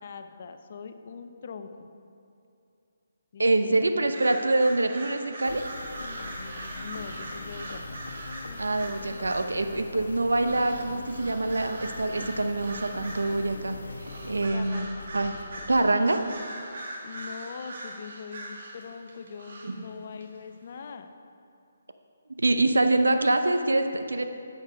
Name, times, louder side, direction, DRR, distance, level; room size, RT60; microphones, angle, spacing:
voice 1, 0.0-1.9 3.3-3.9 6.8-8.0 14.5-15.1 17.0-21.1, left 6 dB, 50° left, 8 dB, 0.6 m, -42 dB
voice 2, 3.4-5.6 8.6-14.9 15.1-15.3 15.7-16.2 19.6-19.9 22.4-24.2, right 2 dB, 85° right, 7 dB, 0.7 m, -25 dB
sound 1, 4.0-9.6 10.4-13.5 13.9-19.9 20.2-20.3, right 1 dB, 60° right, 1.6 m, -41 dB
sound 2, 5.4-15.9, left 2 dB, 80° left, 1.1 m, -41 dB
8.3 x 6.8 x 5.0 m, 2.6 s
figure-of-eight pair, 150°, 0 cm